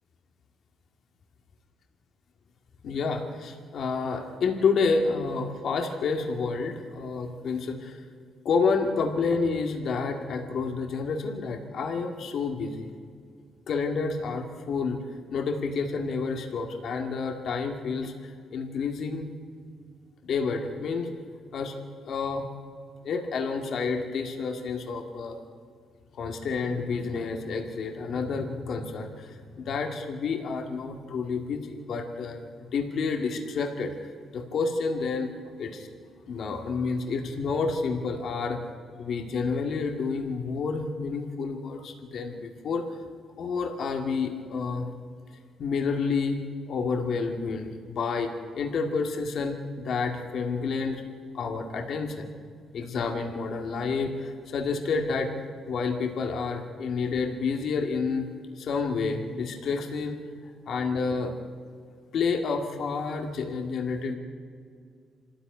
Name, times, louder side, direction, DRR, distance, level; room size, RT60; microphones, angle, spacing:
voice 1, 2.8-8.0 8.4-12.9 13.7-15.0 15.3-19.3 20.2-21.1 21.5-21.7 22.0-22.5 23.0-25.4 26.1-33.9 34.3-35.3 35.6-35.9 36.3-38.6 39.0-42.8 43.4-44.9 45.6-46.4 46.7-51.0 51.3-52.3 52.7-55.3 55.7-58.3 58.6-60.2 60.7-61.3 62.1-64.2, left 4 dB, 65° left, 3 dB, 2.1 m, -29 dB
25.0 x 14.0 x 9.5 m, 2.2 s
cardioid pair, 90°, 0 cm